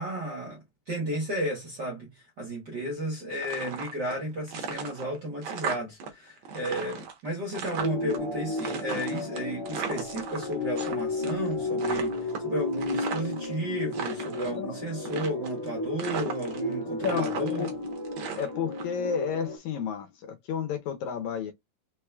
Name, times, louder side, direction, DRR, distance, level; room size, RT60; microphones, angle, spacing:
voice 1, 0.0-17.7, right 1 dB, 55° right, 1.2 m, -33 dB
sound 1, 3.3-4.2 4.5-6.1 6.4-8.2 8.6-10.9 11.2-11.5 11.8-13.4 13.8-14.6 15.0-15.7 16.0-16.7 17.0-18.8, right 6 dB, 75° right, 1.1 m, -36 dB
sound 2, 7.8-19.6, left 2 dB, 30° left, 0.6 m, -33 dB
voice 2, 14.4-14.7 17.0-17.7 18.4-21.5, left 7 dB, 75° left, 1.9 m, -31 dB
4.6 x 4.1 x 2.2 m
omnidirectional pair, 3.6 m